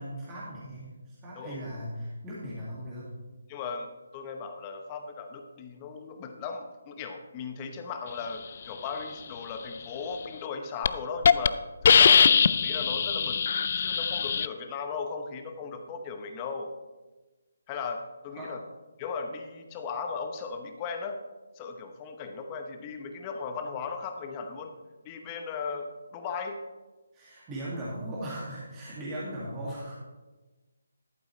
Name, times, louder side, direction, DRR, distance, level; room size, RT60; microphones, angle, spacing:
voice 1, 0.0-3.1 18.3-18.5 27.1-30.0, right 1 dB, 15° right, -7 dB, 2.2 m, -38 dB
voice 2, 1.4-1.7 3.5-16.7 17.7-18.6 19.0-21.2 21.5-24.7 25.0-25.9 26.1-26.6, left 5 dB, 25° left, 5 dB, 0.9 m, -37 dB
Hiss, 10.3-10.5 10.8-10.9 11.2-11.5 11.8-14.5, left 6 dB, 45° left, 0.3 m, -21 dB
11.5 x 8.8 x 3.2 m, 1.2 s
figure-of-eight pair, 155°, 0 cm